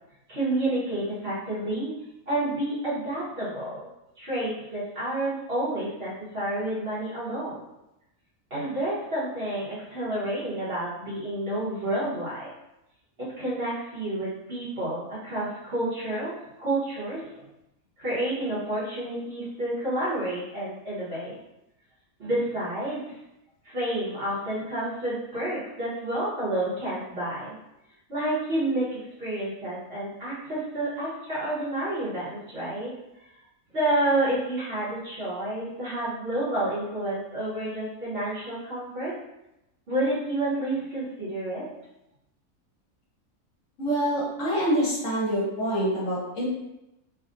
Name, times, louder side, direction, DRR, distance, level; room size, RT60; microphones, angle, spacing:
voice 1, 0.3-1.9 2.3-3.8 4.2-7.7 8.5-12.5 13.2-16.3 16.6-17.2 18.0-21.3 22.2-23.2 23.6-27.5 28.1-32.9 33.7-39.1 39.9-41.6, right 1 dB, 45° right, -10 dB, 1.3 m, -29 dB
voice 2, 43.8-46.5, equal, 60° left, -6 dB, 1.2 m, -26 dB
3.4 x 2.4 x 2.5 m, 0.90 s
omnidirectional pair, 1.5 m